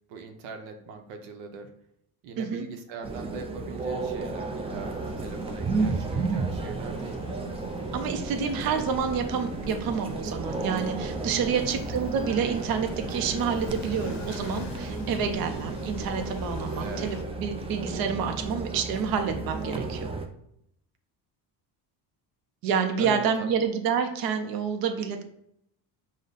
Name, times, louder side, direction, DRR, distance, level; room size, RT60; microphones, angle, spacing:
voice 1, 0.1-1.7 2.2-7.2 11.5-11.8 16.8-17.1 23.0-23.6, right 4 dB, 90° right, 6 dB, 0.7 m, -40 dB
voice 2, 2.4-2.7 7.9-20.1 22.6-25.2, right 6 dB, 50° right, 6 dB, 0.6 m, -28 dB
sound 1, 3.0-20.3, right 3 dB, 15° right, 0.3 m, -33 dB
sound 2, 4.7-17.2, left 3 dB, 40° left, 0.6 m, -43 dB
5.1 x 2.1 x 3.9 m, 0.73 s
cardioid pair, 105°, 45 cm